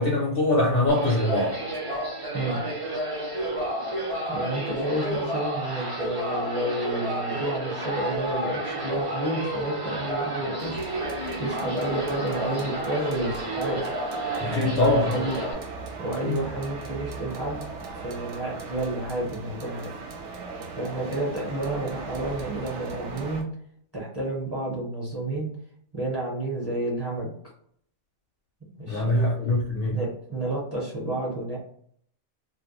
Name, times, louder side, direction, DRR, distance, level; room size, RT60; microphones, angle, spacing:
voice 1, 0.0-1.6 14.4-15.2 16.2-16.4 28.9-30.0, left 1 dB, 60° left, -2 dB, 0.6 m, -23 dB
sound 1, 0.9-15.5, right 1 dB, 50° right, 0.3 m, -31 dB
voice 2, 4.3-13.9 14.4-15.4 16.0-17.6 18.0-19.9 20.8-23.5 23.9-25.5 25.9-27.3 28.6-29.3 29.9-31.6, right 1 dB, 20° right, -4 dB, 0.7 m, -30 dB
sound 2, 10.6-23.4, right 4 dB, 70° right, 0.8 m, -39 dB
2.3 x 2.1 x 3.0 m, 0.63 s
omnidirectional pair, 1.4 m